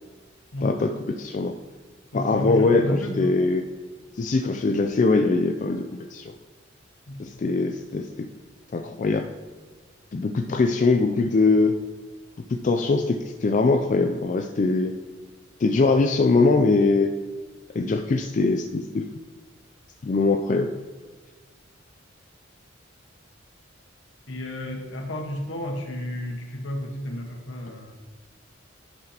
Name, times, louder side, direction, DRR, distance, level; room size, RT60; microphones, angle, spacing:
voice 1, 0.6-1.5 2.1-3.6 4.1-6.3 7.2-8.3 8.7-9.3 10.1-11.8 12.5-14.9 15.6-17.1 17.7-19.0 20.0-20.7, left 3 dB, 40° left, 5 dB, 0.3 m, -22 dB
voice 2, 2.1-3.3 7.1-7.3 24.3-28.0, left 1 dB, 75° left, 2 dB, 1.3 m, -31 dB
11.0 x 5.8 x 2.9 m, 1.4 s
head